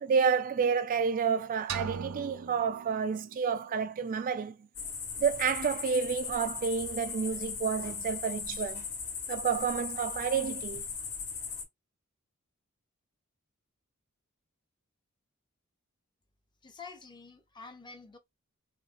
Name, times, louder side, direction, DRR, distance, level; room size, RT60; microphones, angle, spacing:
voice 1, 0.0-4.5 5.2-8.8 9.3-10.8, right 6 dB, 40° right, 0.3 m, -30 dB
sound 1, 1.7-3.6, right 6 dB, 90° right, 0.6 m, -40 dB
sound 2, 4.7-11.6, left 6 dB, 75° left, 2.0 m, -38 dB
voice 2, 16.6-18.2, left 4 dB, 20° left, 0.8 m, -48 dB
6.2 x 2.4 x 2.4 m
head